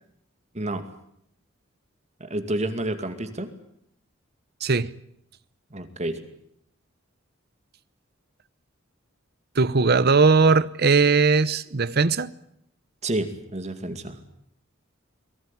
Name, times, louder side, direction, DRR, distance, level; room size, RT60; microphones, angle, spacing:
voice 1, 2.2-3.5 5.7-6.2 13.0-14.2, right 1 dB, 35° right, 2.3 m, -29 dB
voice 2, 4.6-4.9 9.6-12.3, right 4 dB, 50° right, 0.9 m, -19 dB
22.5 x 17.5 x 9.8 m
head